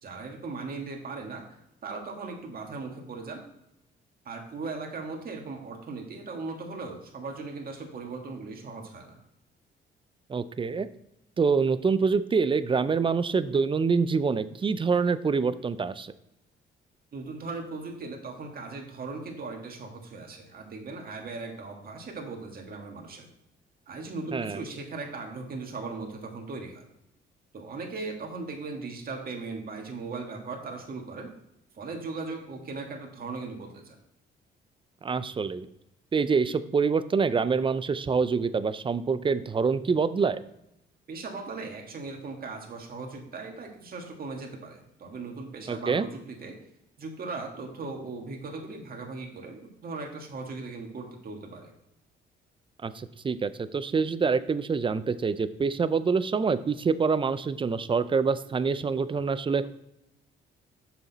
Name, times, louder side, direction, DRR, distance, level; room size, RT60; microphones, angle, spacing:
voice 1, 0.0-1.4 1.8-3.4 4.3-9.2 17.1-23.3 23.9-26.8 27.5-31.3 31.7-34.0 41.1-46.5 47.0-51.7, right 3 dB, 50° right, 1 dB, 1.8 m, -38 dB
voice 2, 10.3-10.9 11.4-16.1 24.3-24.6 35.0-35.7 36.1-40.4 45.7-46.1 52.8-59.6, right 5 dB, 25° right, 14 dB, 0.4 m, -26 dB
6.8 x 6.0 x 4.1 m, 0.84 s
cardioid pair, 90°, 20 cm